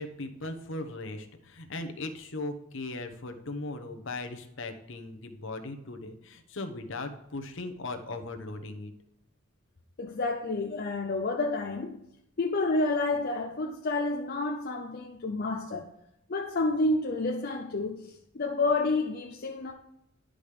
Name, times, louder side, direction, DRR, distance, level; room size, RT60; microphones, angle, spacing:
voice 1, 0.0-8.9, left 2 dB, 60° left, 1.0 m, -38 dB
voice 2, 10.0-12.0 12.4-15.9 16.3-19.7, left 2 dB, 45° left, 0.6 m, -29 dB
10.0 x 5.1 x 5.1 m
head